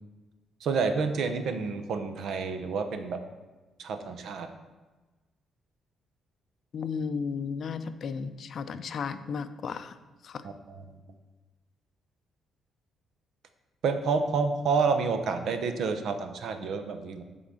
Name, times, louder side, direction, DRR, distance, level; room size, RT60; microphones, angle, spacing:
voice 1, 0.6-3.2 3.8-4.5 10.7-10.8 13.8-17.2, right 5 dB, 70° right, 8 dB, 0.8 m, -29 dB
voice 2, 6.7-10.0 10.2-10.5, left 5 dB, 55° left, 11 dB, 0.5 m, -34 dB
8.0 x 3.9 x 6.2 m, 1.2 s
cardioid pair, 90°, 0 cm